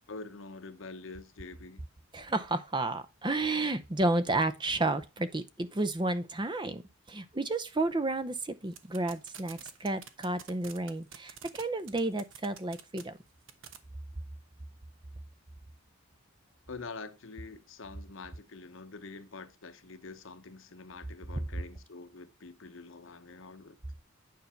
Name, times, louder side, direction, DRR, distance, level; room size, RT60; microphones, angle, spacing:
voice 1, 0.1-1.8 16.7-23.8, left 3 dB, 65° left, 1.0 m, -46 dB
voice 2, 2.1-6.8 7.1-13.2, right 2 dB, 20° right, 0.6 m, -31 dB
sound 1, 8.7-11.6 11.9-13.0 13.5-13.8, right 9 dB, 65° right, 1.1 m, -46 dB
9.4 x 5.4 x 4.4 m
head